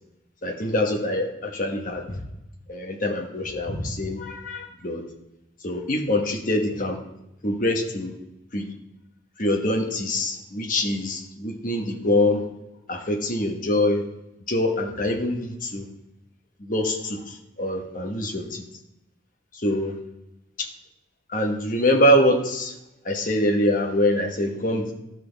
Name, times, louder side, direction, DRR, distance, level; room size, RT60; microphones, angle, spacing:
voice 1, 0.4-2.2 2.7-5.0 5.6-7.0 7.4-8.1 8.5-8.7 9.4-12.4 12.9-14.0 14.5-15.9 16.6-18.6 19.5-20.0 20.6-20.7 21.3-22.7 23.0-24.9, left 1 dB, 45° left, 3 dB, 1.2 m, -24 dB
13.0 x 6.1 x 3.5 m, 0.90 s
head